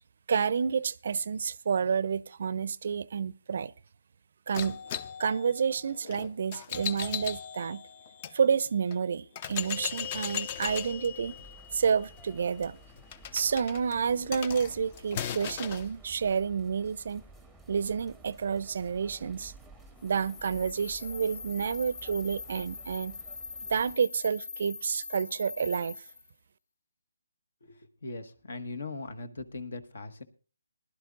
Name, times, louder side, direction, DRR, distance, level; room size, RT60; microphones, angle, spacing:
voice 1, 0.3-3.7 4.5-4.8 5.2-7.8 8.3-11.4 11.7-12.8 13.3-17.2 17.7-19.5 20.0-23.2 23.7-26.0, right 6 dB, 55° right, 0.5 m, -29 dB
sound 1, 4.5-8.3 8.9-9.0 9.4-15.9, left 9 dB, 30° left, 0.5 m, -38 dB
sound 2, 10.5-24.0, right 2 dB, ahead, 0.8 m, -54 dB
sound 3, 20.0-26.3, left 5 dB, 50° left, 2.9 m, -43 dB
voice 2, 27.6-30.2, left 3 dB, 65° left, 1.4 m, -40 dB
20.0 x 11.5 x 2.4 m
hypercardioid pair, 155°, 0 cm